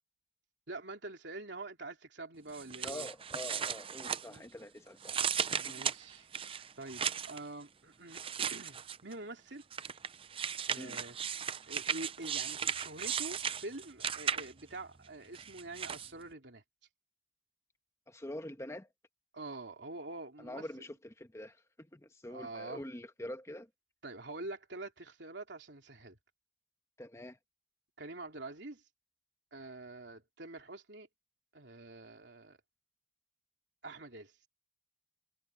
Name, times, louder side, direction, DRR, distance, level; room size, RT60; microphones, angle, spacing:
voice 1, 0.7-3.1 4.3-4.4 5.6-9.6 10.7-16.6 19.3-20.7 22.3-22.8 24.0-26.2 28.0-28.8 29.5-31.1 31.5-32.6 33.8-34.3, right 2 dB, 70° right, 3.4 m, -46 dB
sound 1, 2.5-4.6 5.0-7.4 8.1-9.1 9.7-14.7 15.3-16.1, right 7 dB, 30° right, 0.6 m, -36 dB
voice 2, 2.8-5.8 10.8-11.0 18.1-18.9 20.4-23.7 27.0-27.4, left 1 dB, 15° left, 1.4 m, -45 dB
head